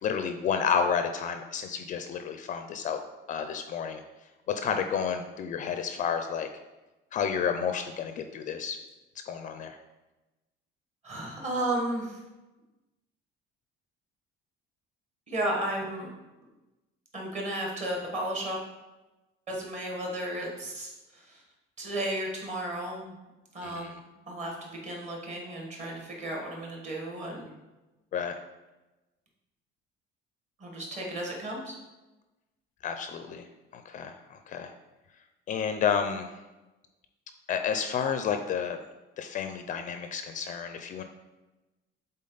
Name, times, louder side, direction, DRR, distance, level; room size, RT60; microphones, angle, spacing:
voice 1, 0.0-3.0 3.3-4.0 4.5-6.5 7.1-8.8 9.3-9.8 23.6-24.0 28.1-28.4 32.8-33.4 33.7-34.7 35.5-36.3 37.5-38.8 39.2-41.0, left 7 dB, 40° left, 7 dB, 0.4 m, -30 dB
voice 2, 11.0-12.2 15.3-16.1 17.1-18.6 19.5-21.4 21.8-23.1 23.5-24.0 24.3-27.5 30.6-31.8, right 1 dB, 35° right, -1 dB, 1.5 m, -33 dB
7.4 x 3.9 x 3.9 m, 1.1 s
cardioid pair, 170°, 21 cm